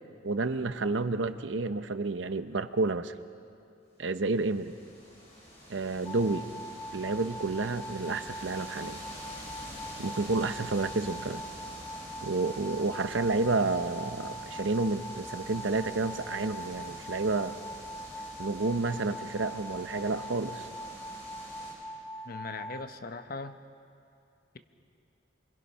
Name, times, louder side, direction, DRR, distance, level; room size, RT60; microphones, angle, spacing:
voice 1, 0.2-3.1 4.0-4.7 5.7-6.4 6.9-9.0 10.0-11.4 12.2-17.5 18.4-20.7, right 3 dB, 75° right, 11 dB, 0.8 m, -30 dB
sound 1, 4.1-21.7, equal, 35° left, 7.0 m, -46 dB
sound 2, 6.1-22.8, equal, 20° left, 0.8 m, -43 dB
voice 2, 22.2-23.6, left 3 dB, 50° left, 9 dB, 1.0 m, -39 dB
26.0 x 24.0 x 5.6 m, 2.5 s
head